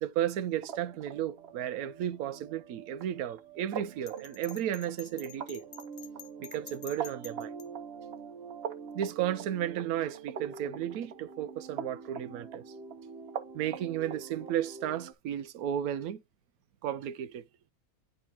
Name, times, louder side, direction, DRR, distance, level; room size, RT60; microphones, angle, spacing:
voice 1, 0.0-5.7 6.4-7.5 8.9-12.6 13.5-16.2 16.8-17.4, right 11 dB, 90° right, 1.1 m, -34 dB
sound 1, 0.6-15.1, right 6 dB, 50° right, 0.9 m, -43 dB
Bell, 4.1-7.7, left 9 dB, 65° left, 1.1 m, -48 dB
10.0 x 3.5 x 2.8 m
omnidirectional pair, 1.5 m